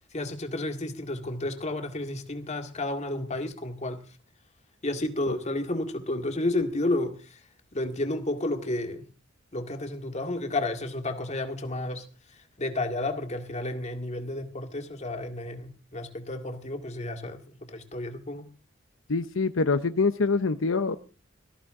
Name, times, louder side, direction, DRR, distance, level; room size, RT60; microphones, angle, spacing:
voice 1, 0.1-4.0 4.8-7.4 7.7-9.1 9.5-18.5, left 2 dB, 35° left, 5 dB, 2.0 m, -31 dB
voice 2, 19.1-21.0, left 4 dB, 75° left, 10 dB, 0.8 m, -25 dB
19.0 x 14.0 x 3.8 m, 0.36 s
head